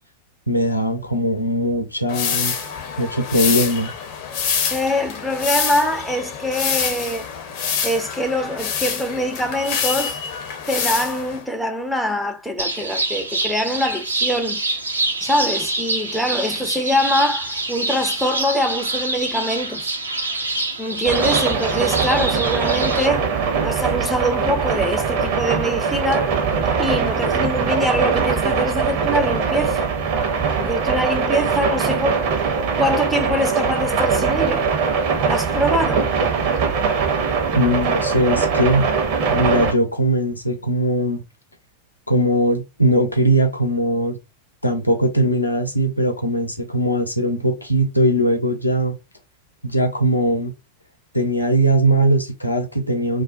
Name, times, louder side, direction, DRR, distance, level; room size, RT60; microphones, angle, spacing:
voice 1, 0.5-2.5 3.0-3.9 37.5-38.9 39.3-41.2 42.1-44.2 44.6-48.9 49.6-50.5 51.1-53.2, right 1 dB, 85° left, 0.7 m, -20 dB
sound 1, 2.1-11.4, left 6 dB, 45° left, 0.6 m, -26 dB
voice 2, 4.7-7.3 7.8-10.2 10.7-14.6 15.2-20.0 20.8-23.3 23.6-26.4 26.8-29.9 30.6-32.2 32.7-34.7 35.2-36.1, equal, ahead, 0.4 m, -23 dB
sound 2, 12.6-23.1, right 2 dB, 80° right, 0.6 m, -26 dB
sound 3, 21.0-39.7, right 5 dB, 45° right, 0.7 m, -21 dB
2.3 x 2.1 x 2.4 m
figure-of-eight pair, 90°, 0 cm